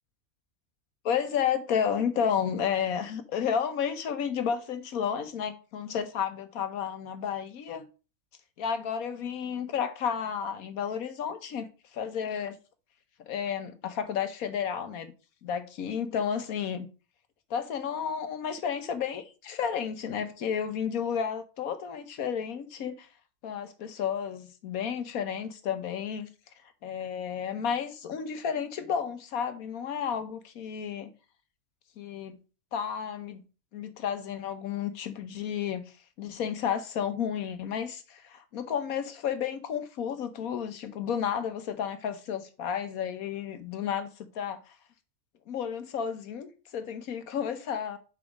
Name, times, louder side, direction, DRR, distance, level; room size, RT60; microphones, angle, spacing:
voice 1, 1.0-7.9 8.6-12.6 13.3-15.1 15.4-16.9 17.5-23.1 23.4-26.3 26.8-31.1 32.0-32.4 32.7-33.4 33.7-35.8 36.2-44.8 45.5-48.0, left 8 dB, 80° left, 1.4 m, -32 dB
7.1 x 4.1 x 5.3 m
omnidirectional pair, 1.5 m